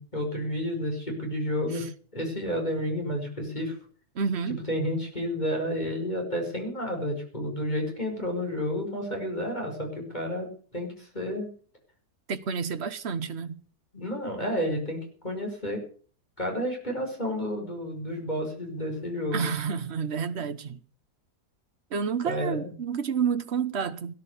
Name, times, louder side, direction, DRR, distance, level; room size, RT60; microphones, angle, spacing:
voice 1, 0.0-1.8 2.1-3.7 4.7-11.5 13.9-15.8 16.4-19.4 22.3-22.7, equal, 25° left, 5.5 m, -31 dB
voice 2, 4.1-4.6 12.3-13.6 19.3-20.8 21.9-24.1, right 6 dB, 45° right, 1.3 m, -29 dB
18.0 x 11.0 x 6.8 m
omnidirectional pair, 1.7 m